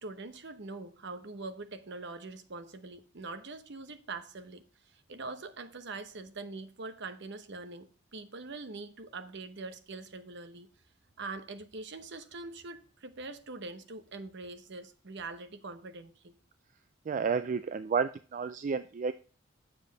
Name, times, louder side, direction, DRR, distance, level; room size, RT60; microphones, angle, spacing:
voice 1, 0.0-10.7 11.2-16.3, right 3 dB, 60° right, 0.9 m, -43 dB
voice 2, 17.1-19.1, right 5 dB, 40° right, 0.3 m, -31 dB
7.4 x 7.1 x 3.9 m
head